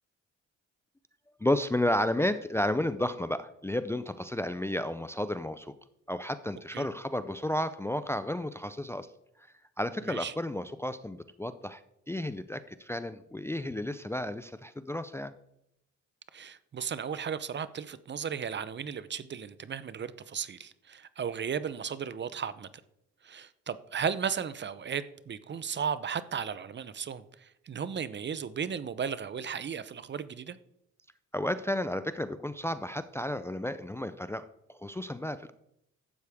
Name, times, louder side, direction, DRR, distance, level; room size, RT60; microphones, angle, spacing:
voice 1, 1.4-5.7 6.1-9.1 9.8-11.8 12.1-15.3 31.3-35.5, left 1 dB, 10° left, 0.4 m, -32 dB
voice 2, 16.3-22.7 23.2-30.6, right 7 dB, 35° right, 0.6 m, -35 dB
12.0 x 8.2 x 3.5 m
cardioid pair, 90°, 30 cm